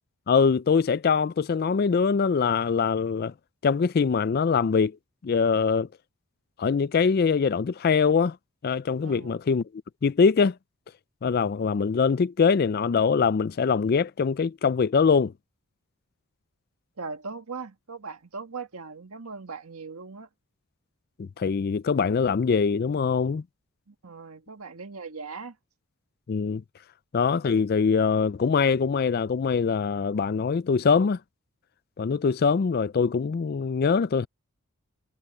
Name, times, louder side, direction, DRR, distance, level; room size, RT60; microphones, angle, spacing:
voice 1, 0.3-3.3 3.6-5.0 5.2-5.9 6.6-8.4 8.6-9.6 10.0-10.6 11.2-15.3 21.2-23.4 26.3-26.6 27.1-31.2 32.0-34.3, left 5 dB, 45° left, 0.3 m, -23 dB
voice 2, 9.0-9.3 17.0-20.3 23.9-25.6, right 4 dB, 80° right, 1.6 m, -39 dB
head